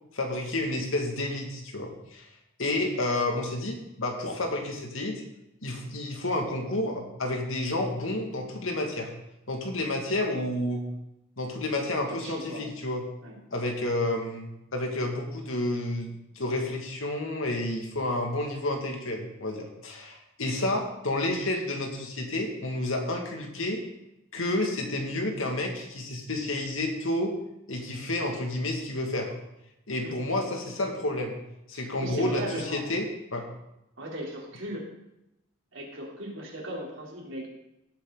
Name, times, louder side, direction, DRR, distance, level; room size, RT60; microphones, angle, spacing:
voice 1, 0.1-2.3 2.6-5.2 5.6-9.1 9.5-10.8 11.4-13.0 13.5-23.8 24.3-27.3 27.7-29.3 29.9-31.4 31.7-33.0 33.3-33.4, left 1 dB, 75° left, 2 dB, 2.4 m, -30 dB
voice 2, 12.2-12.6 13.2-13.4 30.0-30.1 31.7-32.8 34.0-34.9 35.7-37.5, right 1 dB, 70° right, -3 dB, 3.8 m, -37 dB
18.0 x 8.2 x 4.1 m, 0.87 s
head